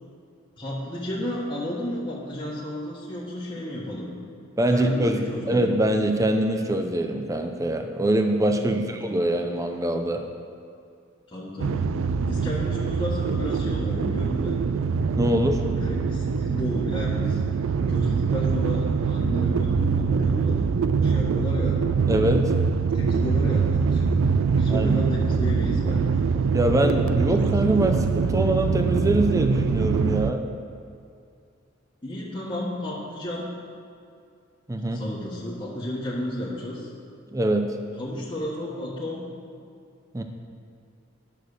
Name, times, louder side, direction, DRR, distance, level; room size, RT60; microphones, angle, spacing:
voice 1, 0.6-4.1 4.7-5.7 8.6-8.9 11.3-11.9 12.2-14.6 15.7-17.4 17.9-21.8 22.9-24.2 24.5-26.2 32.0-33.5 34.9-36.9 38.0-39.2, left 1 dB, 25° left, -8 dB, 1.4 m, -32 dB
voice 2, 4.6-10.2 15.2-15.6 22.1-22.5 24.7-25.0 26.5-30.4 34.7-35.0 37.3-37.7 40.1-40.2, right 1 dB, 15° right, 5 dB, 0.6 m, -23 dB
sound 1, 11.6-30.3, right 5 dB, 80° right, 0.3 m, -24 dB
11.0 x 6.3 x 6.7 m, 2.4 s
head